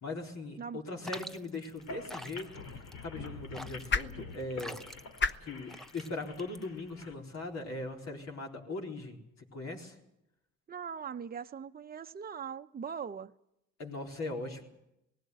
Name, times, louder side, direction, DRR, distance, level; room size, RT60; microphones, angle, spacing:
voice 1, 0.0-4.8 5.4-10.0 13.8-14.6, left 2 dB, 60° left, 4.1 m, -40 dB
sound 1, 1.0-7.0, equal, ahead, 0.8 m, -47 dB
sound 2, 1.7-7.1, left 3 dB, 80° left, 2.9 m, -47 dB
sound 3, 2.1-8.3, left 4 dB, 40° left, 1.0 m, -40 dB
voice 2, 10.7-13.3, right 7 dB, 30° right, 0.8 m, -41 dB
19.0 x 16.0 x 9.5 m
cardioid pair, 90°, 30 cm